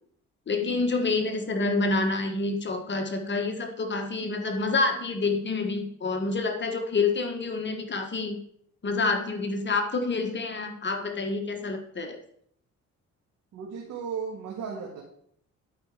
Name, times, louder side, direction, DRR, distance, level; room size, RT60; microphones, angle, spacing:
voice 1, 0.5-8.4 8.8-12.2, left 3 dB, 35° left, 5 dB, 1.3 m, -28 dB
voice 2, 13.5-15.0, right 6 dB, 75° right, -2 dB, 2.0 m, -35 dB
11.5 x 5.0 x 4.9 m, 0.67 s
cardioid pair, 90°, 30 cm